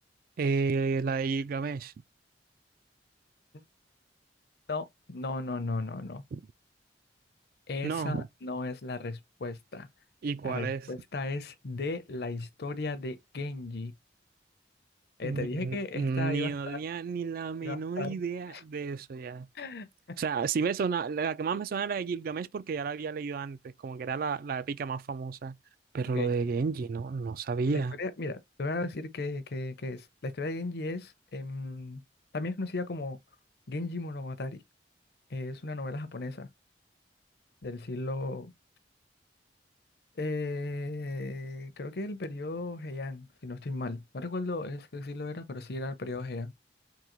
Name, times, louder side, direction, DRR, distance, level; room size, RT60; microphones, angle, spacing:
voice 1, 0.4-1.9 6.3-6.4 7.8-8.2 10.2-10.9 15.2-19.5 20.2-25.5 25.9-28.0, right 5 dB, 50° right, 0.3 m, -31 dB
voice 2, 4.7-6.2 7.7-9.9 10.4-13.9 15.2-16.5 17.6-18.2 18.5-18.6 19.5-19.9 26.1-26.4 27.7-32.0 32.3-33.2 33.7-34.6 35.3-36.5 37.6-38.5 40.2-46.5, left 2 dB, 60° left, 0.6 m, -35 dB
3.8 x 2.8 x 2.9 m
head